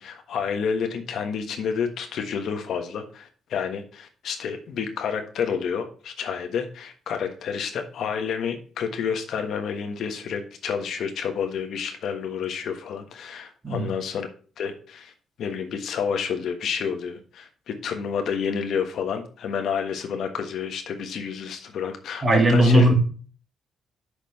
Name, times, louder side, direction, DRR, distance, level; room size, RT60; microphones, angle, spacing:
voice 1, 0.0-14.3 14.6-15.1 15.4-22.9, left 6 dB, 70° left, 6 dB, 1.3 m, -29 dB
voice 2, 22.2-22.9, right 1 dB, 35° right, 3 dB, 2.0 m, -17 dB
6.1 x 5.1 x 6.3 m, 0.40 s
cardioid pair, 90°, 0 cm